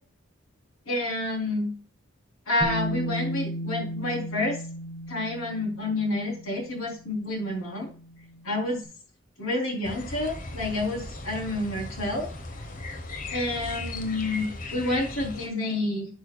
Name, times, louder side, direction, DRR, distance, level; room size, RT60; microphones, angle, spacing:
voice 1, 0.9-1.7 2.5-4.6 5.1-7.9 8.4-8.8 9.4-12.3 13.3-16.1, left 2 dB, 80° left, 0 dB, 3.7 m, -29 dB
Bass guitar, 2.6-8.7, equal, 20° left, 3.0 m, -35 dB
sound 1, 9.8-15.5, left 2 dB, 40° left, 1.1 m, -37 dB
11.0 x 6.3 x 2.4 m, 0.39 s
head